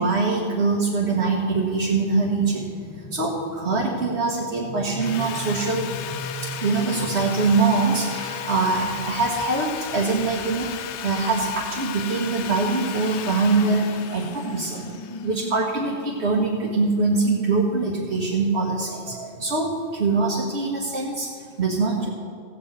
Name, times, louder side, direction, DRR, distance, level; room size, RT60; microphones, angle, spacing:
voice 1, 0.0-2.7 3.1-5.9 6.4-14.9 15.2-22.1, right 3 dB, 70° right, -3 dB, 1.8 m, -23 dB
sound 1, 2.1-11.8 12.2-12.5 13.9-16.3, left 1 dB, 25° left, 0.7 m, -39 dB
Sawing, 5.0-16.0, left 10 dB, 80° left, 0.9 m, -35 dB
16.5 x 5.7 x 8.2 m, 2.2 s
omnidirectional pair, 1.1 m